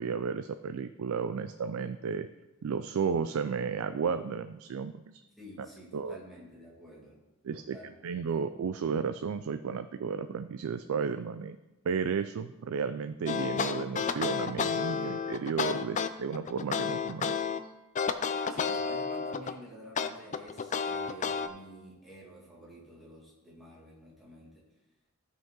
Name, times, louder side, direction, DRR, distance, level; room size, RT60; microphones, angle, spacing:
voice 1, 0.0-2.3 2.6-5.2 5.9-6.2 7.4-7.8 8.0-11.6 11.9-17.4, right 6 dB, 75° right, 10 dB, 0.4 m, -33 dB
voice 2, 5.4-7.2 7.5-8.3 18.5-24.6, equal, ahead, -6 dB, 2.3 m, -50 dB
sound 1, 13.3-17.6 18.0-19.6 20.0-21.5, left 6 dB, 35° left, 0.4 m, -31 dB
14.0 x 5.2 x 3.8 m, 1.0 s
head